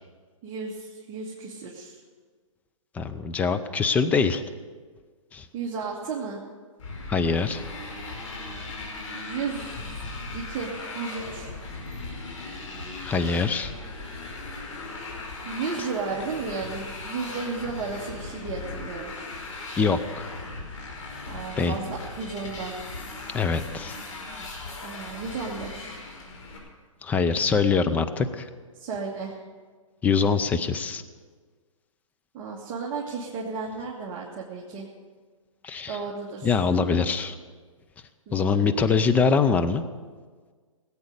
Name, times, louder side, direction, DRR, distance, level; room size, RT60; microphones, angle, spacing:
voice 1, 0.4-2.0 5.5-6.4 9.1-10.0 10.3-11.5 15.4-19.1 21.3-22.8 24.8-25.9 28.7-29.4 32.3-34.9 35.9-36.5 38.3-38.8, right 5 dB, 25° right, -4 dB, 1.8 m, -34 dB
voice 2, 2.9-4.4 5.3-5.5 7.1-7.6 13.0-13.7 19.8-20.3 21.6-21.7 23.3-23.9 27.0-28.5 30.0-31.0 35.6-36.0 36.4-37.4 38.3-39.8, left 5 dB, 10° left, 9 dB, 0.5 m, -23 dB
Motorcycle, 6.8-26.6, left 3 dB, 65° left, 5.0 m, -38 dB
18.5 x 8.5 x 6.6 m, 1.5 s
hypercardioid pair, 140°, 17 cm